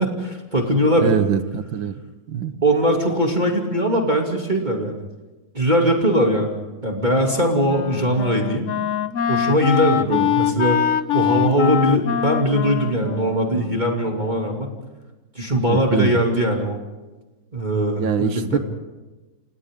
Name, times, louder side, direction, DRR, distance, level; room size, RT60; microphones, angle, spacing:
voice 1, 0.0-1.2 2.6-5.1 5.5-8.7 9.3-10.8 11.1-14.7 15.3-16.8 17.5-18.6, equal, 20° right, 0 dB, 2.9 m, -20 dB
voice 2, 1.0-1.9 2.3-2.5 10.1-10.3 15.7-16.2 18.0-18.6, right 8 dB, 65° right, 10 dB, 1.9 m, -23 dB
Wind instrument woodwind instrument, 7.2-14.4, left 9 dB, 60° left, 0.8 m, -24 dB
29.0 x 28.0 x 3.8 m, 1.2 s
omnidirectional pair, 2.3 m